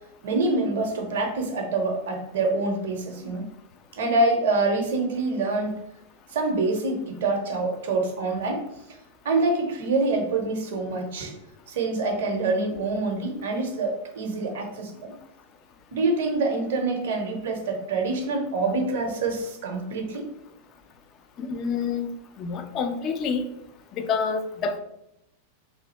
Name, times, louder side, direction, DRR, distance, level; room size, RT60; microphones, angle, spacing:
voice 1, 0.2-3.4 3.9-5.7 6.3-8.7 9.2-11.3 11.7-15.1 15.9-20.3, right 3 dB, 55° right, 3 dB, 0.7 m, -26 dB
voice 2, 21.4-22.1 22.4-23.5 23.9-24.8, left 5 dB, 35° left, 6 dB, 0.5 m, -27 dB
3.2 x 2.6 x 4.0 m, 0.83 s
figure-of-eight pair, 90°, 0 cm